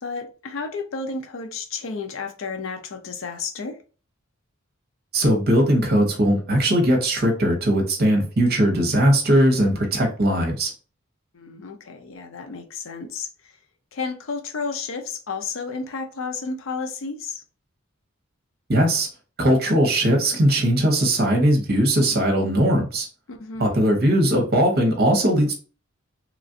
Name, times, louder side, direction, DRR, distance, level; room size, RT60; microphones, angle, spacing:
voice 1, 0.0-3.8 11.3-13.3 13.9-17.4 23.3-24.0, left 4 dB, 75° left, 0.5 m, -32 dB
voice 2, 5.1-10.7 18.7-19.1 19.4-23.1 23.6-25.6, right 1 dB, 50° right, 0.9 m, -19 dB
3.0 x 2.4 x 2.6 m
head